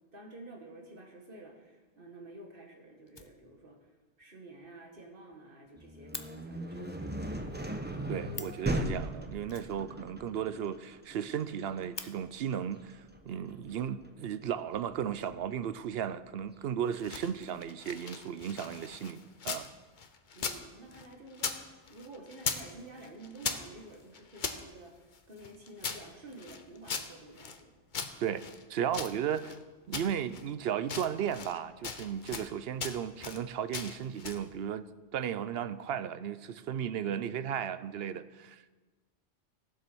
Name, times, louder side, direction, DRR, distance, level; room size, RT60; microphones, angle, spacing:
voice 1, 0.1-3.9 4.2-7.4 20.3-27.8, right 2 dB, 50° right, 1 dB, 2.1 m, -50 dB
Fire, 1.9-2.0 2.4-2.5 2.7-2.8 3.1-3.9 4.2-4.3 4.6-4.7 5.0-5.1 5.3-6.3 8.0-8.1 8.3-8.7 9.5-10.4 10.7-10.8 11.1-11.2 11.6-12.1 13.1-13.2 13.9-14.5, left 4 dB, 30° left, 0.6 m, -46 dB
sound 1, 5.8-15.5, right 1 dB, 10° right, 0.8 m, -38 dB
voice 2, 8.1-13.0 13.3-19.7 28.2-28.4 28.7-29.6 29.9-34.9 35.1-38.7, right 9 dB, 65° right, 14 dB, 0.7 m, -35 dB
sound 2, 16.8-19.7 20.0-21.6 21.9-22.7 23.0-24.6 25.1-27.6 27.9-29.6 29.9-30.5 30.8-31.6 31.8-32.5 32.8-33.4 33.7-34.5, left 5 dB, 45° left, 0.9 m, -39 dB
15.5 x 7.6 x 6.1 m, 1.3 s
omnidirectional pair, 1.2 m